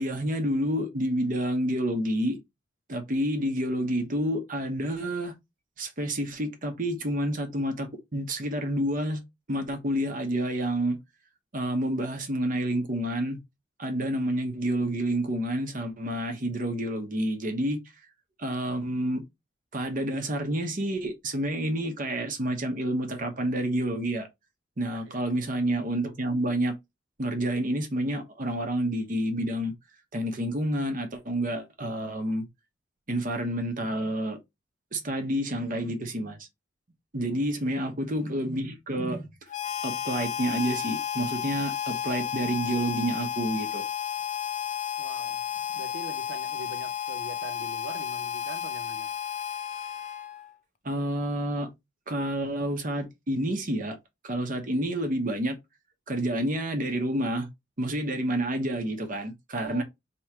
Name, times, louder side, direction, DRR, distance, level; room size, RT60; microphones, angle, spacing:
voice 1, 0.0-2.4 2.9-5.3 5.8-9.2 9.5-11.0 11.5-13.4 13.8-17.8 18.4-19.2 19.7-24.3 24.8-26.8 27.2-29.7 30.1-32.4 33.1-34.4 34.9-36.5 37.1-39.3 39.8-43.8 50.8-51.7 52.1-54.0 54.2-55.6 56.1-57.5 57.8-59.8, right 1 dB, 45° right, 1.0 m, -29 dB
voice 2, 37.3-37.7 45.0-45.4 45.8-49.2 59.5-59.8, right 4 dB, 80° right, 0.6 m, -43 dB
Harmonica, 39.5-50.5, left 9 dB, 40° left, 0.6 m, -32 dB
3.1 x 3.0 x 4.6 m
head